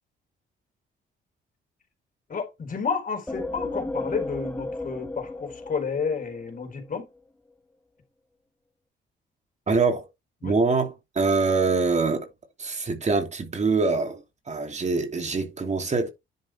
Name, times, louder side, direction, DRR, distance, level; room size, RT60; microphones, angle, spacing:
voice 1, 2.3-7.1 10.4-10.6, left 5 dB, 45° left, 4.3 m, -31 dB
sound 1, 3.3-6.9, left 2 dB, 10° left, 1.7 m, -34 dB
voice 2, 9.7-10.0 10.4-12.3 12.6-16.1, right 4 dB, 35° right, 2.8 m, -24 dB
11.0 x 6.3 x 3.4 m
cardioid pair, 90°, 20 cm